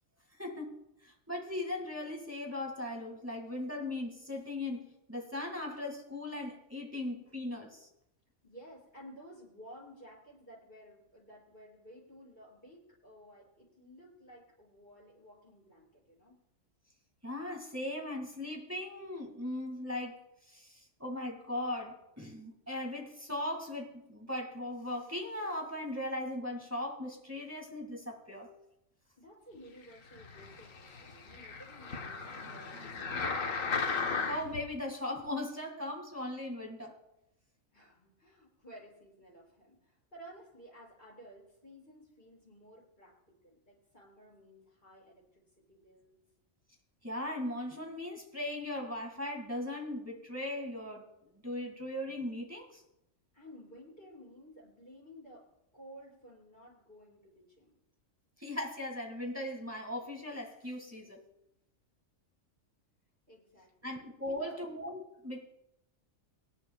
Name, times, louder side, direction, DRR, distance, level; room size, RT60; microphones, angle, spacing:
voice 1, 0.4-0.8 1.0-7.9 17.2-20.2 20.5-28.5 34.3-37.0 47.0-51.0 51.4-52.8 58.4-61.2 63.8-65.4, left 1 dB, 10° right, 1 dB, 2.0 m, -38 dB
voice 2, 8.4-16.4 29.2-33.6 37.7-45.4 45.7-46.2 53.3-55.5 55.7-57.7 63.3-63.9 64.2-64.5, equal, 40° left, -6 dB, 6.3 m, -54 dB
sound 1, 30.1-34.7 35.3-35.4, left 5 dB, 80° left, 1.6 m, -36 dB
25.0 x 10.5 x 2.3 m, 0.85 s
omnidirectional pair, 1.4 m